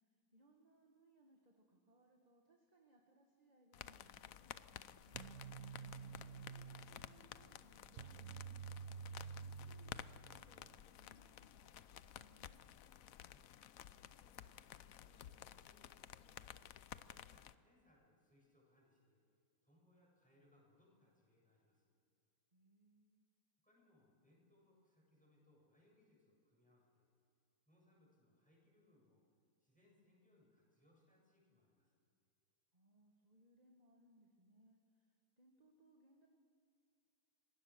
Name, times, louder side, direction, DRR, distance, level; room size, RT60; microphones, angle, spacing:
voice 1, 0.0-5.3 6.0-9.0 9.3-12.9 22.5-23.3 32.7-36.3, right 1 dB, 20° right, 1 dB, 1.8 m, -70 dB
sound 1, 3.7-17.5, left 11 dB, 70° left, 0.8 m, -55 dB
sound 2, 5.1-10.7, right 6 dB, 60° right, 0.8 m, -51 dB
voice 2, 14.0-16.6 17.0-19.2 19.6-21.9 23.6-27.1 27.7-29.2 29.6-32.0, left 1 dB, 5° left, -3 dB, 7.5 m, -73 dB
26.0 x 19.5 x 6.4 m, 2.4 s
omnidirectional pair, 2.1 m